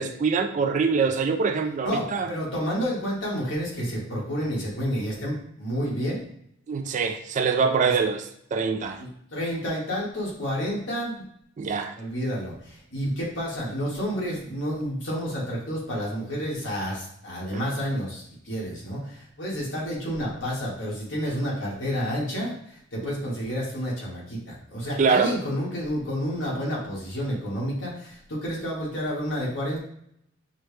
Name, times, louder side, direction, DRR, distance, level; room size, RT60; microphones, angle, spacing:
voice 1, 0.0-2.3 6.7-8.2 8.5-9.0 11.6-12.0 25.0-25.3, right 5 dB, 40° right, 6 dB, 0.3 m, -24 dB
voice 2, 1.8-6.2 7.8-8.0 9.0-11.2 11.9-29.8, equal, 70° left, -4 dB, 1.6 m, -30 dB
5.9 x 2.2 x 3.2 m, 0.72 s
head